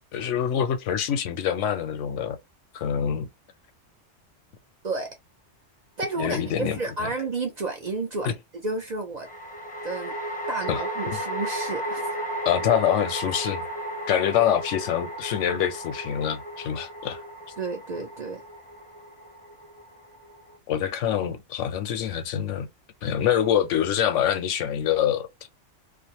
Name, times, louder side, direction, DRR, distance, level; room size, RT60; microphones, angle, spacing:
voice 1, 0.1-2.4 2.7-3.3 6.2-7.1 8.2-8.3 10.7-10.8 12.5-13.7 14.1-17.2 20.7-22.7 23.0-25.5, left 9 dB, 85° left, 0.9 m, -25 dB
voice 2, 4.8-5.2 6.0-8.3 8.5-9.3 9.8-10.1 10.5-12.1 17.6-18.4, right 3 dB, 50° right, 0.5 m, -31 dB
sound 1, 6.1-6.8 9.2-20.6, right 1 dB, 10° left, 0.5 m, -34 dB
2.5 x 2.3 x 2.8 m
omnidirectional pair, 1.2 m